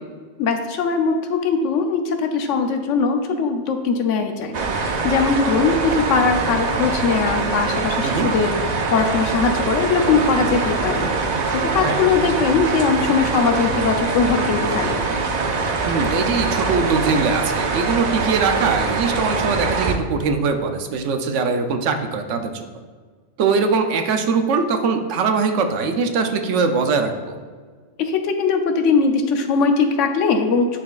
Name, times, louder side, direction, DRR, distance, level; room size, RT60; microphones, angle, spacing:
voice 1, 0.4-8.6 8.9-11.1 11.5-15.0 28.0-30.8, left 5 dB, 80° left, 5 dB, 1.0 m, -20 dB
sound 1, 4.5-19.9, right 4 dB, 55° right, 0.4 m, -23 dB
voice 2, 15.9-22.5 23.4-27.3, right 4 dB, 75° right, 7 dB, 0.9 m, -21 dB
9.9 x 4.2 x 2.4 m, 1.5 s
omnidirectional pair, 1.3 m